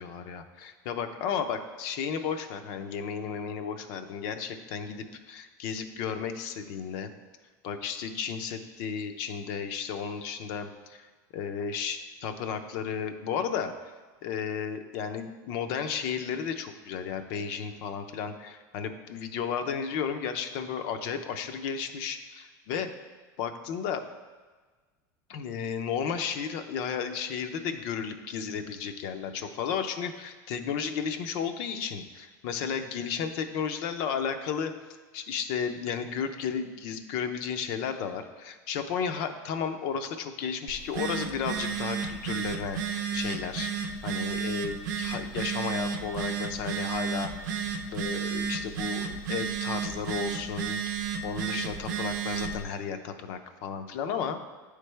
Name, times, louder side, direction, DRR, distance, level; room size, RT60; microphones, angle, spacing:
voice 1, 0.0-7.1 7.6-11.1 11.3-13.7 14.2-22.9 23.4-24.0 25.3-34.7 35.1-43.7 44.0-47.6 47.9-54.4, left 7 dB, 65° left, 8 dB, 0.6 m, -33 dB
Telephone, 40.7-52.6, right 6 dB, 85° right, 0.6 m, -32 dB
8.8 x 3.3 x 3.3 m, 1.4 s
supercardioid pair, 115°, 10 cm